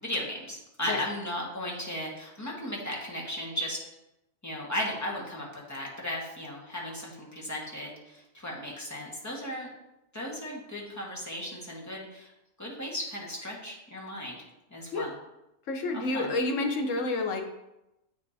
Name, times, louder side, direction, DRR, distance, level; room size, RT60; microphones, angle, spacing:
voice 1, 0.0-3.8 4.4-9.7 10.1-12.3 12.6-14.4 14.7-15.2 15.9-16.3, left 1 dB, 15° left, -4 dB, 1.4 m, -36 dB
voice 2, 15.7-17.4, left 2 dB, 70° left, 4 dB, 1.2 m, -29 dB
8.5 x 5.3 x 2.8 m, 0.92 s
omnidirectional pair, 1.4 m